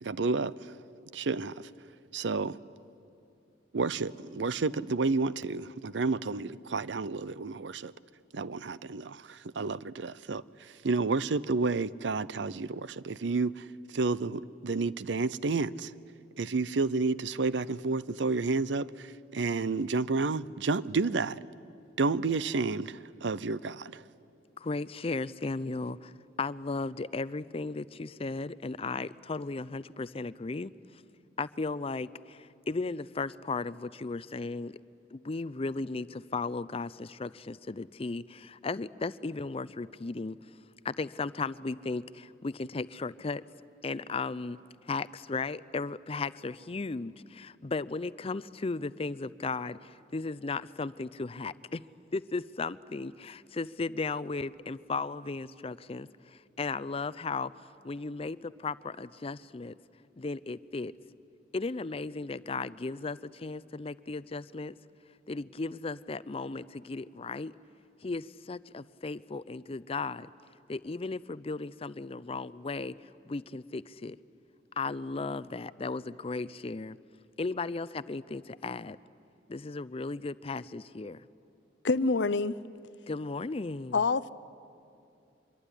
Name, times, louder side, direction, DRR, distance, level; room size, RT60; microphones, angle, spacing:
voice 1, 0.0-0.5 1.1-1.7 2.1-2.6 3.7-7.9 8.3-10.4 10.8-13.7 13.9-15.9 16.4-21.4 22.0-24.0, right 3 dB, 80° right, 0.6 m, -30 dB
voice 2, 24.6-26.1 26.4-30.7 31.4-34.8 35.1-40.4 40.8-43.4 43.8-44.6 44.9-51.8 52.1-57.5 57.8-59.7 60.2-60.9 61.5-64.7 65.3-67.5 68.0-70.3 70.7-72.9 73.3-74.2 74.8-77.0 77.4-79.0 79.5-81.2 83.1-84.0, left 3 dB, 35° left, 0.5 m, -35 dB
voice 3, 81.8-82.6 83.9-84.3, left 4 dB, 80° left, 0.7 m, -26 dB
25.0 x 22.5 x 10.0 m
head